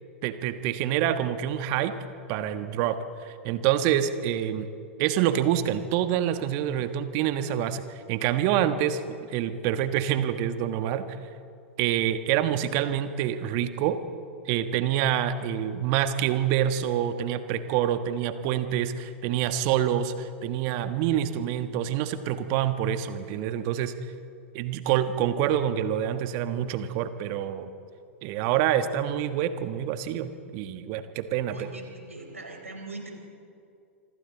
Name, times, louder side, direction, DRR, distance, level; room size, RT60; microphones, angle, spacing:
voice 1, 0.2-1.9 2.3-4.7 5.0-9.0 9.3-11.1 11.8-14.0 14.4-23.9 24.5-27.7 28.2-31.7, right 10 dB, 45° right, 10 dB, 1.3 m, -26 dB
voice 2, 31.5-33.1, right 3 dB, 85° right, 2 dB, 4.2 m, -41 dB
27.5 x 25.0 x 4.1 m, 2.4 s
figure-of-eight pair, 95°, 7 cm